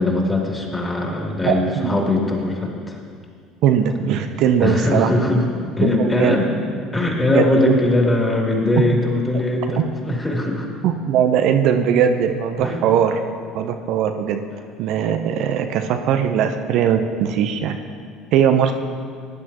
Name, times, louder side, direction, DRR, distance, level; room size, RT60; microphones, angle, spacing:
voice 1, 0.0-3.0 4.6-5.4 5.8-6.5 6.9-10.7 12.6-12.8, left 2 dB, 15° left, -1 dB, 2.9 m, -20 dB
voice 2, 1.4-2.0 3.6-5.1 5.8-6.4 7.3-7.8 10.8-13.2 13.5-14.4 14.8-17.8 18.3-18.7, right 8 dB, 60° right, 6 dB, 0.7 m, -19 dB
18.0 x 11.0 x 3.0 m, 2.2 s
hypercardioid pair, 65°, 0 cm